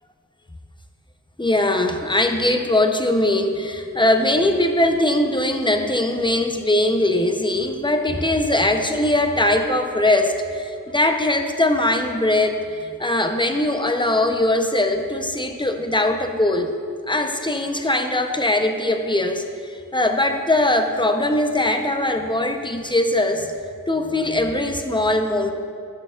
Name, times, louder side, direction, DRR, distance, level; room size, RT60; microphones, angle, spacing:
voice 1, 1.4-16.7 17.1-23.5 23.9-25.5, left 1 dB, 15° left, 5 dB, 0.5 m, -21 dB
11.5 x 6.6 x 2.3 m, 2.2 s
wide cardioid pair, 50°, 34 cm